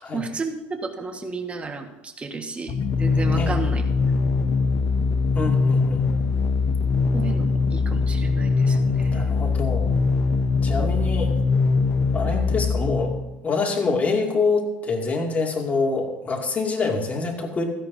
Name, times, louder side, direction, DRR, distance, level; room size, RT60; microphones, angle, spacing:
voice 1, 0.1-3.8 7.1-9.2 10.7-10.8, right 4 dB, 20° right, 4 dB, 1.6 m, -33 dB
sound 1, 2.7-13.4, left 4 dB, 50° left, 1.0 m, -22 dB
voice 2, 3.4-3.7 5.3-6.0 9.0-10.0 10.6-11.3 12.1-13.1 13.4-17.6, left 4 dB, 25° left, 1 dB, 2.4 m, -25 dB
16.5 x 13.0 x 2.7 m, 1.0 s
supercardioid pair, 105°, 5 cm